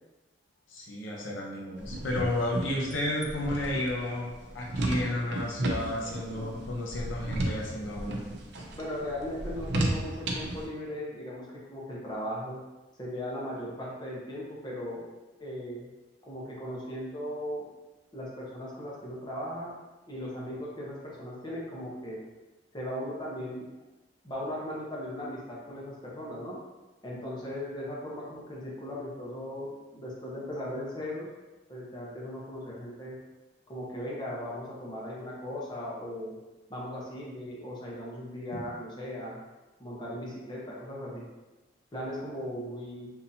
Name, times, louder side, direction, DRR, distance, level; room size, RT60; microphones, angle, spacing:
voice 1, 0.7-8.4 38.5-38.6, left 1 dB, 85° left, -2 dB, 0.7 m, -32 dB
sound 1, 1.8-10.6, right 1 dB, 60° right, 0.5 m, -33 dB
voice 2, 8.7-12.6 13.0-15.1 15.4-15.9 16.2-17.6 18.1-19.7 20.1-22.2 22.7-23.7 24.2-26.6 27.0-31.3 31.7-33.2 33.7-36.4 36.7-39.4 39.8-41.2 41.9-43.1, equal, 25° left, -5 dB, 0.9 m, -38 dB
3.7 x 2.8 x 2.7 m, 1.1 s
head